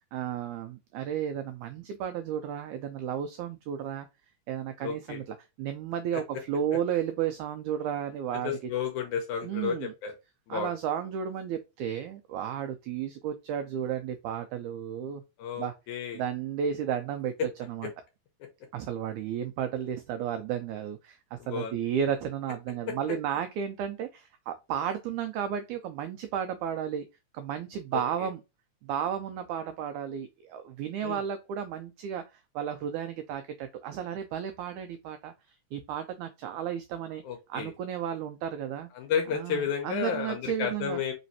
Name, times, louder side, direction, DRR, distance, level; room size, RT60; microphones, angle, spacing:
voice 1, 0.1-4.1 4.5-5.2 5.6-8.6 9.4-9.9 10.5-15.2 15.6-15.7 16.1-17.9 18.7-27.1 27.3-28.4 28.8-35.3 35.7-37.2 37.5-38.9 39.3-41.0, right 9 dB, 90° right, 1.7 m, -33 dB
voice 2, 4.8-5.2 6.1-6.2 8.4-10.1 10.5-10.7 15.4-16.2 21.4-21.8 27.9-28.3 31.0-31.2 37.2-37.7 38.9-41.1, left 7 dB, 70° left, 1.9 m, -32 dB
5.0 x 3.1 x 2.7 m
omnidirectional pair, 4.0 m